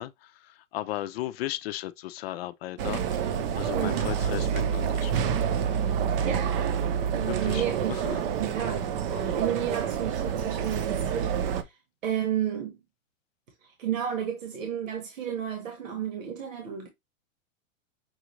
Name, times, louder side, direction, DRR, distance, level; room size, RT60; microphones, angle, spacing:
voice 1, 0.0-3.3 3.5-5.1 7.3-8.2, left 14 dB, 50° left, 0.5 m, -36 dB
sound 1, 2.8-11.6, right 8 dB, 45° right, 0.7 m, -28 dB
voice 2, 3.7-4.1 6.2-6.5 7.1-8.0 8.4-11.8 12.0-12.8 13.6-16.9, right 9 dB, 80° right, 1.4 m, -32 dB
6.1 x 2.5 x 3.0 m
hypercardioid pair, 140°, 39 cm